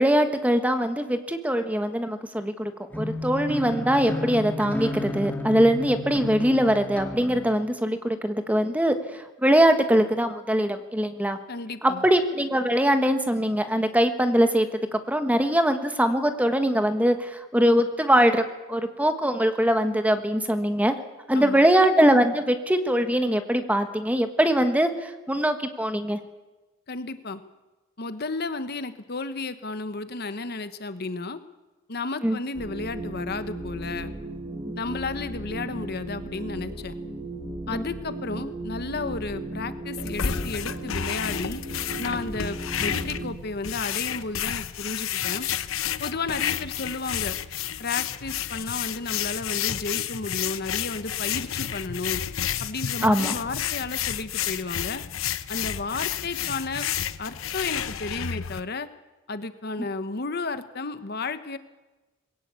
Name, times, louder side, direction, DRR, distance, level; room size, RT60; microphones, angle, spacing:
voice 1, 0.0-8.9 9.4-11.4 11.8-18.4 18.7-21.0 21.3-26.2 32.2-32.4 53.0-53.4, equal, 5° right, 8 dB, 1.4 m, -22 dB
sound 1, 2.9-7.5, left 1 dB, 10° left, 1.9 m, -32 dB
voice 2, 11.5-12.0 21.3-21.7 26.9-27.4 28.0-31.4 31.9-34.1 34.7-36.9 37.7-41.6 42.0-45.5 46.0-47.4 47.8-52.2 52.6-55.0 55.5-56.9 57.2-58.9 59.3-61.6, left 3 dB, 50° left, 11 dB, 1.1 m, -33 dB
sound 2, 32.6-43.5, right 1 dB, 25° right, 1.6 m, -36 dB
sound 3, 40.0-58.6, left 9 dB, 80° left, 0.8 m, -31 dB
21.5 x 17.5 x 8.3 m, 1.1 s
head